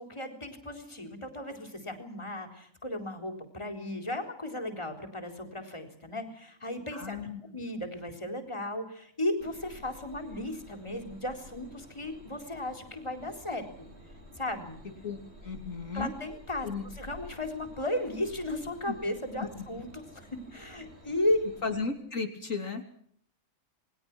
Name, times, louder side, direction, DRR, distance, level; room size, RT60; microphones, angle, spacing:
voice 1, 0.0-13.9 14.4-14.8 15.9-16.7 16.9-21.4, left 1 dB, 20° left, 5 dB, 3.9 m, -35 dB
voice 2, 6.9-7.4 15.0-16.1 16.6-16.8 18.9-19.0 21.6-22.8, left 4 dB, 70° left, 4 dB, 3.2 m, -35 dB
sound 1, 9.4-21.9, equal, 50° right, 4.3 m, -51 dB
28.5 x 21.5 x 6.1 m, 0.63 s
omnidirectional pair, 1.4 m